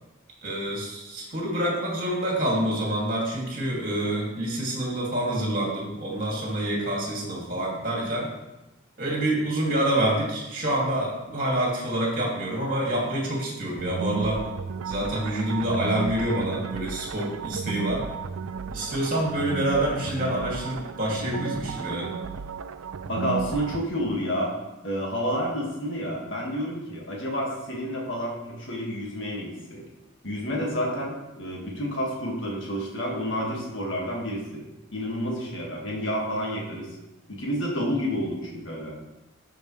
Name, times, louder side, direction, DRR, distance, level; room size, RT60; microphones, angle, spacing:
voice 1, 0.4-8.3 9.0-14.4 14.8-18.0 18.7-22.1, right 1 dB, 45° right, -3 dB, 2.4 m, -27 dB
sound 1, 13.8-23.9, right 6 dB, 90° right, 0.4 m, -34 dB
voice 2, 23.1-24.5 24.8-29.8 30.2-34.6 34.9-36.9 37.3-38.9, equal, 65° left, -2 dB, 1.8 m, -29 dB
12.5 x 5.0 x 3.2 m, 0.99 s
head